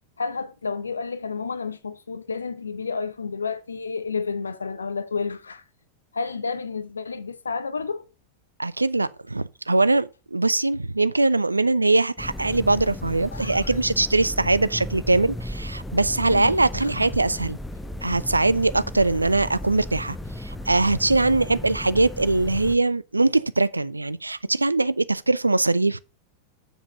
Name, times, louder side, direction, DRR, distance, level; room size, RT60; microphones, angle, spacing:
voice 1, 0.2-5.6 6.1-8.1 13.3-13.7 16.3-16.5 16.8-17.1, left 5 dB, 75° left, 0.7 m, -31 dB
voice 2, 8.6-17.6 18.0-26.0, right 2 dB, 80° right, 0.4 m, -22 dB
sound 1, 12.2-22.8, left 1 dB, 10° left, 1.0 m, -35 dB
7.4 x 7.0 x 5.2 m
figure-of-eight pair, 90°, 0 cm